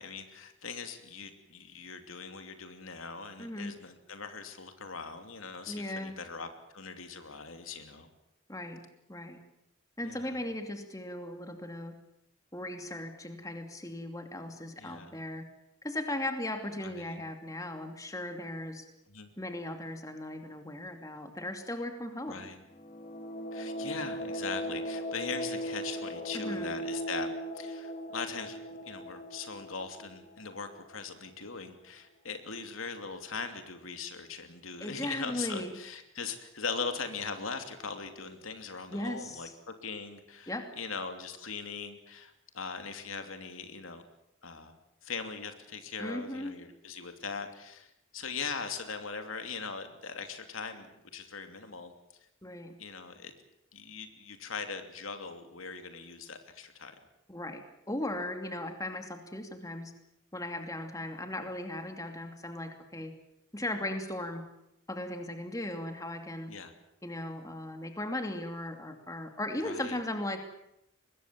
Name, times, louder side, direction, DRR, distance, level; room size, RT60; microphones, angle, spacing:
voice 1, 0.0-6.5 6.7-8.1 10.0-10.3 14.8-15.1 16.8-17.2 19.1-19.3 22.3-22.6 23.5-27.3 27.5-28.6 28.8-39.5 39.8-44.0 44.4-44.7 45.0-51.9 52.8-53.3 53.7-56.9 66.5-66.7 69.6-70.0, left 5 dB, 90° left, 7 dB, 2.8 m, -40 dB
voice 2, 3.4-3.7 5.7-6.1 8.5-8.8 9.1-9.4 10.0-11.9 12.5-15.4 15.8-18.8 19.4-22.5 26.3-26.7 34.8-35.8 38.9-39.5 40.5-40.6 46.0-46.5 52.4-52.7 57.3-59.9 60.3-63.1 63.5-64.4 64.9-66.5 67.0-70.4, left 1 dB, 15° left, 5 dB, 2.6 m, -37 dB
sound 1, 22.7-31.3, equal, 40° left, 3.6 m, -38 dB
24.0 x 21.0 x 7.6 m, 0.81 s
head